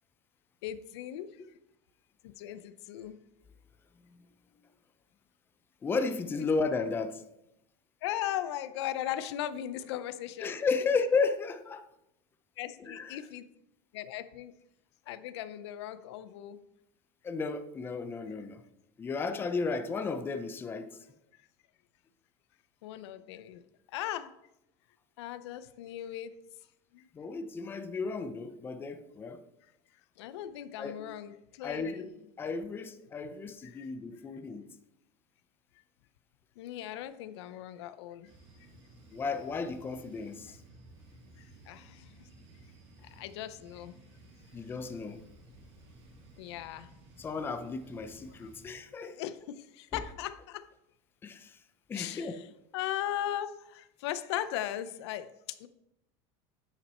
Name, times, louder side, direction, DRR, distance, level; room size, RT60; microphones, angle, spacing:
voice 1, 0.6-1.4 2.2-3.2 6.4-6.5 8.0-10.5 12.6-13.5 13.9-14.5 15.1-16.6 22.8-23.6 23.9-24.3 25.2-26.3 26.9-27.1 30.2-32.1 33.2-33.3 33.6-33.9 36.6-38.3 41.4-42.3 43.0-44.0 46.4-46.9 48.4-48.5 49.0-50.7 51.9-52.5 52.7-55.7, left 12 dB, 90° left, 0.6 m, -38 dB
voice 2, 5.8-7.2 10.4-11.9 12.8-13.2 17.2-18.6 19.0-21.0 27.1-29.4 30.8-31.1 31.6-34.7 39.1-40.6 44.5-45.2 47.2-49.2 51.2-51.6 51.9-52.4, left 4 dB, 15° left, 0.5 m, -33 dB
sound 1, 38.2-48.7, right 2 dB, 60° right, 3.0 m, -56 dB
9.5 x 5.9 x 4.2 m
supercardioid pair, 155°, 14 cm